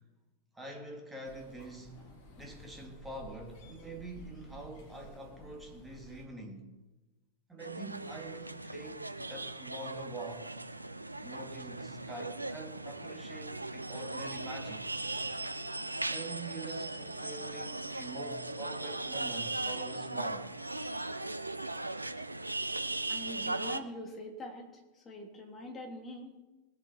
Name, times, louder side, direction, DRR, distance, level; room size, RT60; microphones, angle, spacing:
voice 1, 0.5-6.7 7.5-10.6 11.2-14.9 16.1-20.5, right 2 dB, 10° right, 2.6 m, -45 dB
sound 1, 1.2-6.2, left 1 dB, 45° left, 4.4 m, -53 dB
sound 2, 7.6-23.8, right 2 dB, 85° right, 0.6 m, -38 dB
voice 2, 23.1-24.7 24.9-26.4, left 1 dB, 20° left, 3.2 m, -44 dB
20.0 x 8.1 x 4.5 m
figure-of-eight pair, 90°, 0 cm